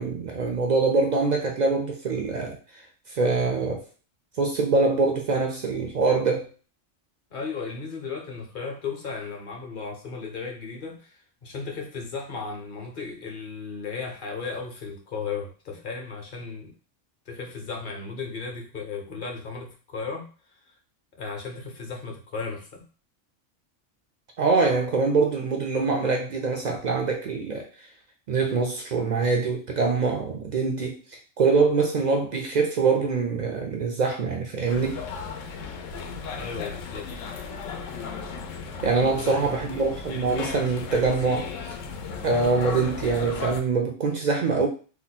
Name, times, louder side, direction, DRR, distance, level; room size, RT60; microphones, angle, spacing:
voice 1, 0.0-2.6 3.1-3.8 4.4-6.5 24.4-27.7 28.3-31.0 31.4-35.0 38.8-41.5 42.2-44.7, right 4 dB, 70° right, 3 dB, 0.4 m, -24 dB
voice 2, 7.3-16.7 17.3-20.3 20.7-20.8 21.2-22.8 36.4-37.1 37.4-37.6 39.1-39.9, left 4 dB, 50° left, 2 dB, 0.8 m, -35 dB
sound 1, 34.7-43.6, left 5 dB, 90° left, 0.9 m, -35 dB
2.8 x 2.1 x 4.0 m, 0.37 s
omnidirectional pair, 1.3 m